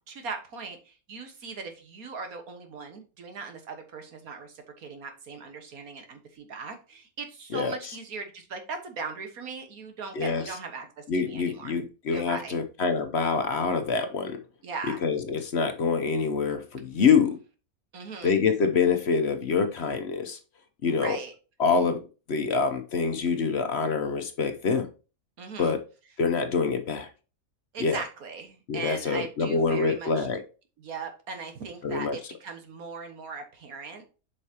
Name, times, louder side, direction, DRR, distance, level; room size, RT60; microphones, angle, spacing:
voice 1, 0.1-11.8 12.1-12.6 14.6-15.0 17.9-18.4 20.9-21.3 25.4-25.8 27.7-30.3 30.8-34.0, right 4 dB, 80° right, 1.8 m, -39 dB
voice 2, 7.5-7.9 10.1-10.4 11.1-14.4 15.0-17.4 18.2-20.4 20.8-21.2 21.6-22.0 22.3-24.9 25.6-25.8 26.2-27.1 27.8-28.0 28.7-30.4 31.8-32.2, left 5 dB, 55° left, 0.9 m, -26 dB
8.0 x 5.5 x 2.8 m
omnidirectional pair, 1.5 m